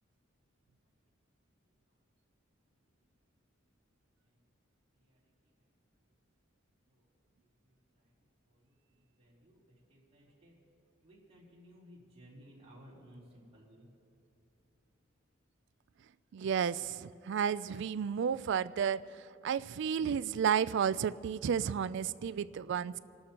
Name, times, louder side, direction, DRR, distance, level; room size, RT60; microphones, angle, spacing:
voice 1, 9.2-9.6 9.9-10.5 11.0-13.9, equal, 30° right, -6 dB, 3.7 m, -57 dB
voice 2, 16.3-19.0 19.4-23.0, right 7 dB, 60° right, 17 dB, 0.3 m, -32 dB
27.5 x 13.0 x 2.9 m, 2.6 s
head